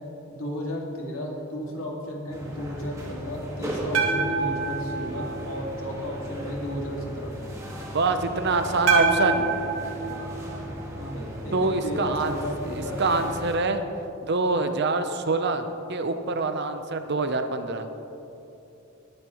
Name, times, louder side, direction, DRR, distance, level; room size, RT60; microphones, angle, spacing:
voice 1, 0.3-7.3 10.9-11.6 11.8-13.0, equal, 75° left, -1 dB, 2.2 m, -34 dB
sound 1, 2.3-13.6, equal, 15° right, 1.7 m, -37 dB
sound 2, 3.9-6.1 8.9-11.2, right 4 dB, 85° right, 1.8 m, -27 dB
voice 2, 7.9-9.5 11.5-12.4 12.7-13.8 14.3-15.6 15.9-17.9, right 3 dB, 55° right, 8 dB, 0.8 m, -25 dB
20.0 x 9.9 x 3.1 m, 2.9 s
head